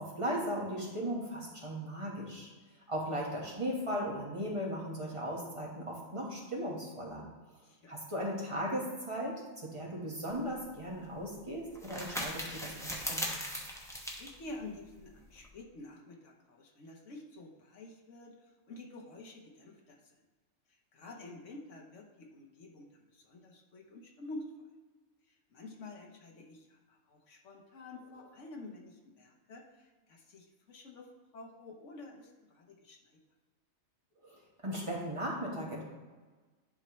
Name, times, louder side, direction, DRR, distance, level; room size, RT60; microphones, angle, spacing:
voice 1, 0.0-2.5 2.9-7.3 7.9-13.5 34.2-35.8, equal, 25° right, -3 dB, 1.4 m, -37 dB
voice 2, 7.6-8.0 14.2-18.3 18.7-20.1 20.9-22.9 23.1-24.7 25.5-33.0, left 2 dB, 65° left, 1 dB, 1.4 m, -49 dB
sound 1, 10.3-15.5, equal, 5° left, 0.8 m, -40 dB
11.0 x 4.4 x 3.1 m, 1.3 s
omnidirectional pair, 1.4 m